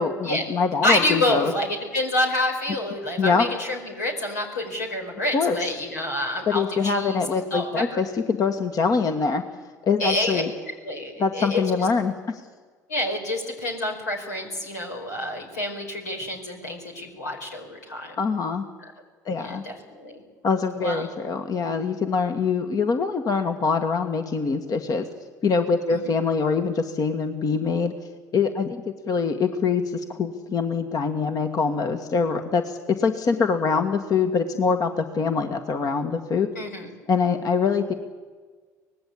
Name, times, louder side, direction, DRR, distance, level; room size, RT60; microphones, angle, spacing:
voice 1, 0.0-1.5 3.2-3.4 5.3-5.6 6.5-9.4 9.8-10.5 11.2-12.1 18.2-18.6 19.3-19.6 20.4-25.1 25.4-27.9 28.3-36.5 37.1-37.9, left 5 dB, 45° left, 6 dB, 1.8 m, -24 dB
voice 2, 0.8-8.0 10.0-10.4 10.8-11.6 12.9-18.1 19.3-20.2 20.8-21.1 25.9-26.1 36.5-36.9, left 1 dB, 90° left, 1 dB, 4.8 m, -28 dB
24.5 x 19.0 x 8.6 m, 1.5 s
hypercardioid pair, 65°, 9 cm